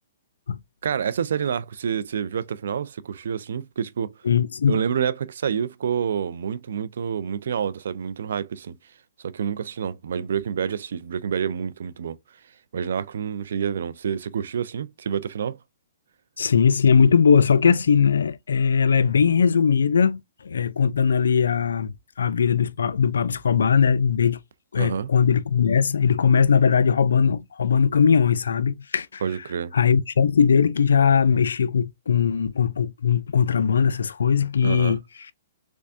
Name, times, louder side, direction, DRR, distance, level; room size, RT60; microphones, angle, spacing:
voice 1, 0.8-4.1 4.7-8.8 9.2-12.2 12.7-15.6 24.8-25.1 29.2-29.7 34.6-35.0, right 7 dB, 75° right, 0.4 m, -28 dB
voice 2, 4.2-4.8 16.4-24.4 24.7-29.2 29.7-35.0, left 6 dB, 90° left, 0.4 m, -20 dB
3.5 x 3.3 x 2.6 m
hypercardioid pair, 145°, 0 cm